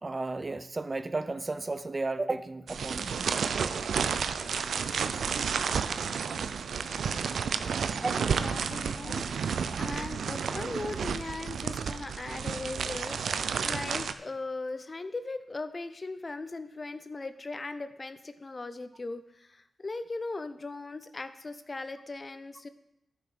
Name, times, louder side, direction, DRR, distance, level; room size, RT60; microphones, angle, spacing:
voice 1, 0.0-3.3 8.0-8.3, right 3 dB, 35° right, 12 dB, 0.6 m, -33 dB
sound 1, 2.7-14.1, right 6 dB, 75° right, 0.5 m, -31 dB
voice 2, 8.0-22.7, left 3 dB, 40° left, 11 dB, 0.7 m, -39 dB
10.5 x 6.1 x 5.2 m, 0.81 s
supercardioid pair, 45°, 0 cm